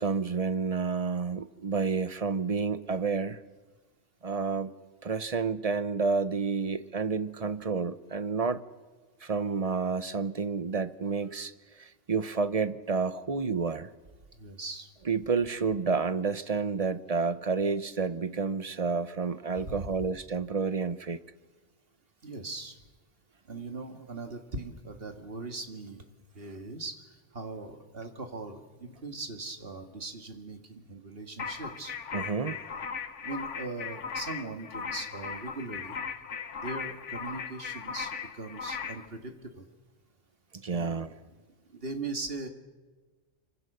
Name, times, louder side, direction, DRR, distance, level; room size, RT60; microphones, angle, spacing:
voice 1, 0.0-3.4 4.2-4.7 5.0-8.6 9.2-11.5 11.8-13.9 15.1-21.2 32.1-32.6 40.6-41.1, right 5 dB, 35° right, 13 dB, 0.8 m, -30 dB
voice 2, 14.4-14.9 19.6-19.9 22.2-22.8 23.5-26.0 26.3-27.0 27.3-32.0 33.2-36.0 36.6-39.7 40.7-41.1 41.7-42.5, right 3 dB, 50° right, 6 dB, 2.1 m, -40 dB
sound 1, 31.4-39.1, left 6 dB, 75° left, 1.5 m, -38 dB
26.0 x 25.0 x 6.8 m, 1.3 s
omnidirectional pair, 1.3 m